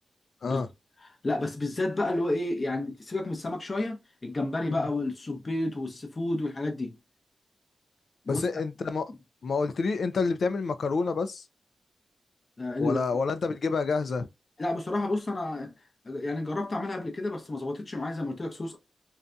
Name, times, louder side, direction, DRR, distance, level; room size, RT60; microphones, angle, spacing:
voice 1, 1.2-7.0 8.3-8.5 12.6-13.0 14.6-15.7 16.0-18.8, left 2 dB, 30° left, 0.7 m, -30 dB
voice 2, 8.3-9.1 9.4-11.4 12.8-14.3, left 4 dB, 65° left, 0.3 m, -28 dB
2.6 x 2.2 x 2.4 m
wide cardioid pair, 120°, 0 cm